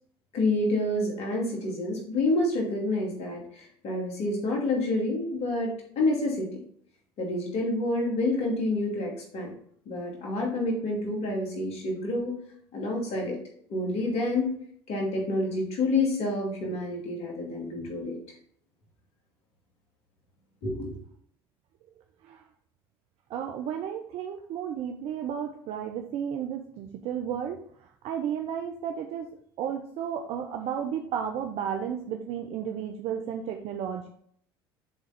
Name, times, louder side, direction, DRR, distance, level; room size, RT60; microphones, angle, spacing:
voice 1, 0.3-5.7 6.0-6.5 7.2-9.5 9.9-12.3 12.7-13.4 13.7-14.5 14.9-18.2 20.6-21.0, left 2 dB, 55° left, 0 dB, 2.6 m, -28 dB
voice 2, 23.3-29.3 29.6-34.1, right 8 dB, 55° right, 4 dB, 0.7 m, -33 dB
7.2 x 3.7 x 5.2 m, 0.64 s
hypercardioid pair, 70°, 12 cm